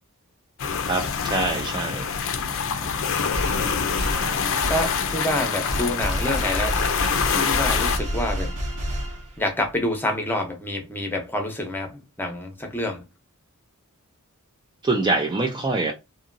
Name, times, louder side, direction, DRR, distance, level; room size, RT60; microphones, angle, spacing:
sound 1, 0.6-8.0, left 6 dB, 60° left, 0.5 m, -25 dB
voice 1, 0.9-2.1 14.8-15.9, right 3 dB, 20° right, 0.4 m, -24 dB
sound 2, 3.3-9.6, equal, 85° right, 1.2 m, -30 dB
voice 2, 4.6-6.8 7.3-8.5 9.4-13.0, left 1 dB, 10° left, 0.8 m, -27 dB
2.8 x 2.7 x 2.6 m
head